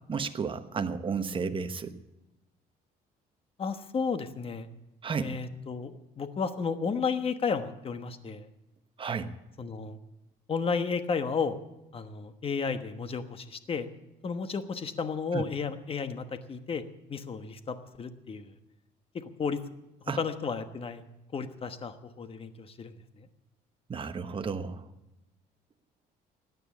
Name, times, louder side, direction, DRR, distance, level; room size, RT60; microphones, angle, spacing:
voice 1, 0.1-1.9 5.0-5.3 9.0-9.3 15.3-15.4 20.1-20.2 23.9-24.8, right 5 dB, 30° right, 9 dB, 1.1 m, -32 dB
voice 2, 3.6-4.7 5.2-8.5 9.6-10.0 10.5-11.6 11.9-13.9 14.2-16.8 17.1-18.5 19.1-19.6 20.2-21.0 21.3-23.3, left 5 dB, 35° left, 10 dB, 1.2 m, -33 dB
14.0 x 9.7 x 8.3 m, 0.97 s
cardioid pair, 110°, 17 cm